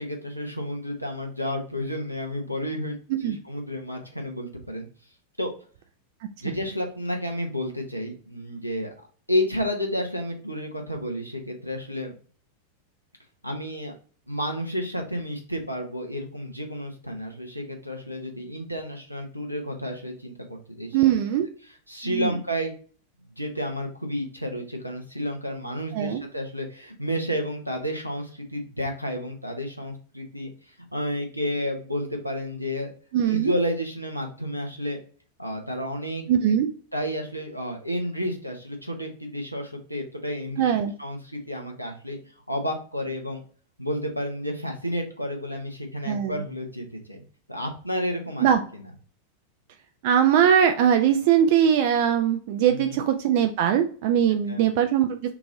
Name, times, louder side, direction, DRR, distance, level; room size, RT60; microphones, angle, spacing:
voice 1, 0.0-3.0 3.2-4.9 5.4-5.5 6.4-8.9 9.3-12.1 13.4-13.9 14.3-21.0 21.9-22.7 23.4-30.5 30.9-32.9 33.3-35.0 35.4-36.3 36.9-40.7 41.0-42.2 42.5-43.4 43.8-47.2 47.5-48.5 48.7-48.9 52.7-53.0 54.5-54.7, equal, 90° right, 2 dB, 0.7 m, -31 dB
voice 2, 20.9-21.5 22.0-22.3 25.9-26.2 33.1-33.5 36.3-36.7 40.6-40.9 46.1-46.4 48.4-48.6 50.0-55.3, right 9 dB, 50° right, 7 dB, 0.3 m, -21 dB
3.0 x 2.5 x 3.6 m, 0.42 s
figure-of-eight pair, 90°, 0 cm